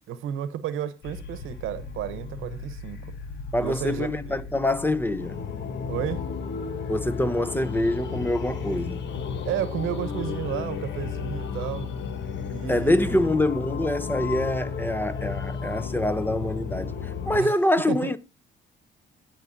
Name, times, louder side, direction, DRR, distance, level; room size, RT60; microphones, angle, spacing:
voice 1, 0.1-3.1 3.6-4.5 5.9-6.3 9.4-11.9 12.5-13.3 17.3-17.5 17.9-18.1, right 10 dB, 90° right, 1.0 m, -32 dB
sound 1, 1.0-17.4, left 6 dB, 65° left, 1.2 m, -34 dB
voice 2, 3.5-5.5 6.9-9.0 12.7-18.2, left 1 dB, 10° left, 0.9 m, -25 dB
16.0 x 5.8 x 2.7 m
cardioid pair, 90°, 20 cm